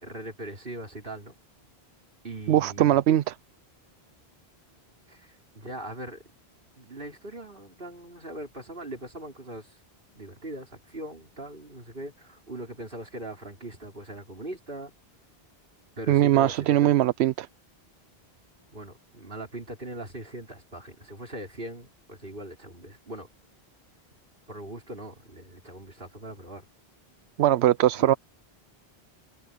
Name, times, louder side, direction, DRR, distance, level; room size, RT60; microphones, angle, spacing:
voice 1, 0.0-1.4 2.2-3.0 5.1-6.2 6.8-9.7 10.1-14.9 16.0-16.9 18.7-23.3 24.5-26.6 28.0-28.1, right 1 dB, 60° right, 5.1 m, -40 dB
voice 2, 2.5-3.4 16.1-17.5 27.4-28.1, right 13 dB, 85° right, 0.8 m, -21 dB
omnidirectional pair, 1.1 m